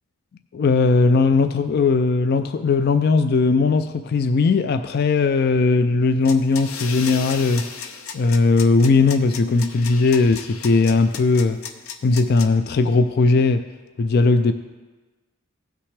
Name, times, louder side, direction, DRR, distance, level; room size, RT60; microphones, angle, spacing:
voice 1, 0.5-7.7 8.1-11.6 12.0-13.7 14.0-14.5, left 3 dB, 45° left, 10 dB, 0.3 m, -18 dB
sound 1, 6.2-12.4, left 7 dB, 70° left, 0.7 m, -35 dB
16.5 x 5.9 x 3.3 m, 1.3 s
head